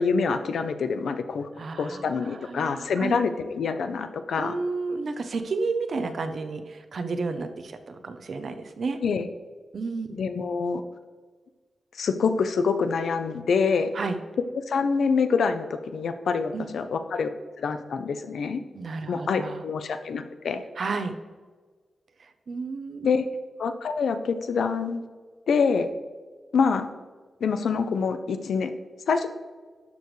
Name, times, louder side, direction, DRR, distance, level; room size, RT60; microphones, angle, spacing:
voice 1, 0.0-1.5 1.8-4.6 9.0-9.3 10.2-10.8 11.9-13.9 14.7-17.3 17.6-18.6 19.1-20.6 23.0-23.3 23.6-25.0 25.5-25.9 26.5-26.9 27.4-28.7 29.1-29.3, left 5 dB, 85° left, 9 dB, 0.7 m, -26 dB
voice 2, 1.6-3.2 4.4-9.0 9.7-10.2 13.9-14.2 16.5-16.7 18.7-19.6 20.8-21.1 22.2-23.1, right 4 dB, 50° right, 8 dB, 0.8 m, -32 dB
12.0 x 6.9 x 3.2 m, 1.4 s
wide cardioid pair, 170°, 0 cm